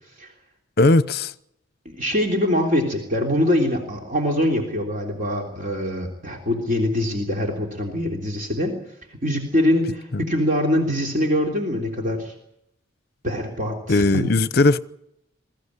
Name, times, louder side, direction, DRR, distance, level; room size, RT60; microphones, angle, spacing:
voice 1, 0.8-1.3 10.1-10.2 13.9-14.8, left 2 dB, 50° left, 0.8 m, -18 dB
voice 2, 1.8-8.7 9.2-12.3 13.2-14.3, left 1 dB, 40° right, 3.4 m, -23 dB
22.0 x 15.5 x 9.8 m
head